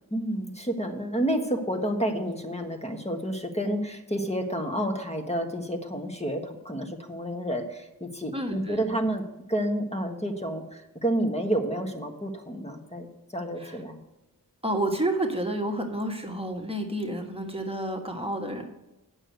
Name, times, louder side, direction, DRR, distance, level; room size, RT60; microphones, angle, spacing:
voice 1, 0.1-9.2 9.5-14.0, right 1 dB, 15° left, 4 dB, 1.4 m, -30 dB
voice 2, 8.3-8.8 13.6-13.8 14.6-18.6, right 1 dB, 15° right, 2 dB, 1.4 m, -30 dB
8.8 x 6.4 x 6.6 m, 0.99 s
wide cardioid pair, 60°, 36 cm